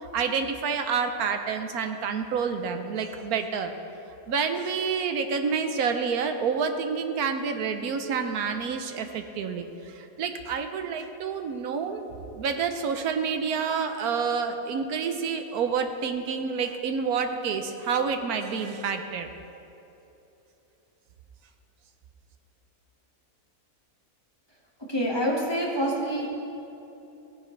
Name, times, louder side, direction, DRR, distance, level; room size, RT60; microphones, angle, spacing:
voice 1, 0.1-3.7 4.3-19.3, right 6 dB, 75° right, 7 dB, 1.3 m, -28 dB
voice 2, 24.9-26.3, equal, 15° left, -4 dB, 1.7 m, -26 dB
16.5 x 9.8 x 3.3 m, 3.0 s
omnidirectional pair, 1.6 m